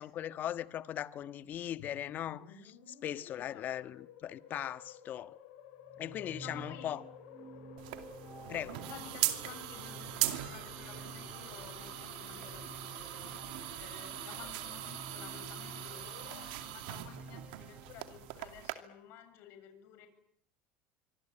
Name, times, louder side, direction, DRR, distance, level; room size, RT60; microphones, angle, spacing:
voice 1, 0.0-2.7 3.0-5.3 6.0-7.0 8.5-8.8, left 11 dB, 40° left, 1.4 m, -39 dB
sound 1, 1.8-16.6, left 8 dB, 85° left, 6.7 m, -53 dB
voice 2, 3.4-3.9 6.4-6.9 8.9-20.1, left 9 dB, 60° left, 7.5 m, -53 dB
sound 2, 5.8-18.4, right 3 dB, 25° right, 3.3 m, -52 dB
sound 3, 7.8-18.7, right 16 dB, 85° right, 2.5 m, -40 dB
25.5 x 24.0 x 8.9 m
supercardioid pair, 130°, 5 cm